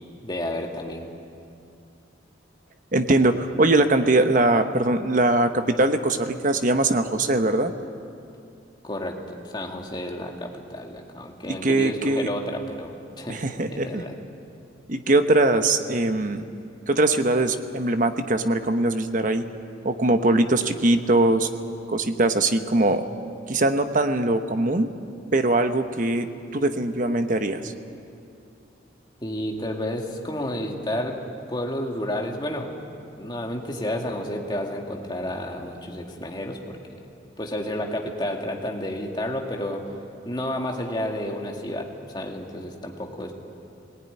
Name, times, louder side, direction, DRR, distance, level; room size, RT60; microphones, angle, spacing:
voice 1, 0.2-1.1 8.8-13.4 13.7-14.2 29.2-31.2 31.5-32.7 33.2-36.8 37.4-39.8 40.2-43.3, left 1 dB, 25° left, 1 dB, 2.1 m, -31 dB
voice 2, 2.9-7.7 11.5-12.3 13.3-14.0 14.9-16.4 16.9-19.5 19.8-21.5 21.9-23.0 23.5-24.9 25.3-27.7, right 2 dB, 45° right, 8 dB, 1.0 m, -21 dB
19.5 x 18.5 x 9.7 m, 2.5 s
head